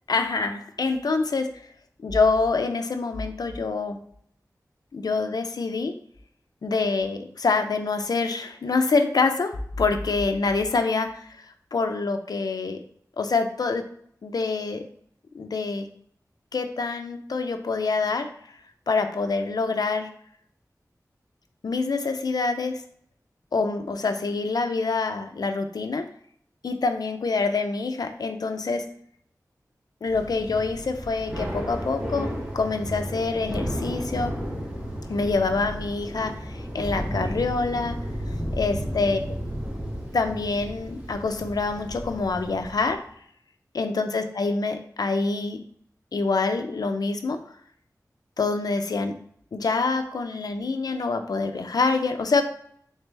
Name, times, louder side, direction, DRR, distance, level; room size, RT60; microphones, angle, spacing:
voice 1, 0.1-1.6 2.0-4.0 4.9-5.9 6.6-11.3 11.7-12.8 13.2-13.9 14.2-14.8 15.3-15.9 16.5-18.3 18.9-20.1 21.6-22.8 23.5-26.1 26.6-28.9 30.0-34.3 35.1-38.0 38.6-39.4 40.1-43.0 43.7-45.6 46.1-47.4 48.4-49.1 49.5-52.4, left 4 dB, 75° left, 7 dB, 0.4 m, -26 dB
Thunder / Rain, 30.1-43.0, equal, 15° right, 1.1 m, -33 dB
3.3 x 3.2 x 3.2 m, 0.64 s
wide cardioid pair, 65°, 7 cm